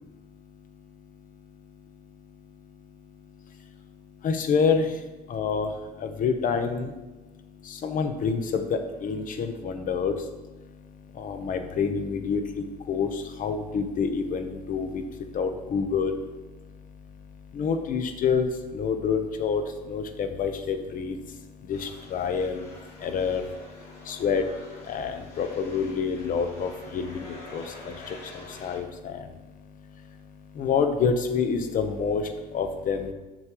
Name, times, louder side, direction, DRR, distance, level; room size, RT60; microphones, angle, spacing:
voice 1, 0.2-33.1, left 5 dB, 55° left, 8 dB, 0.9 m, -29 dB
sound 1, 21.7-28.8, left 2 dB, 75° left, 2.6 m, -47 dB
9.9 x 6.4 x 3.0 m, 1.1 s
cardioid pair, 110°, 17 cm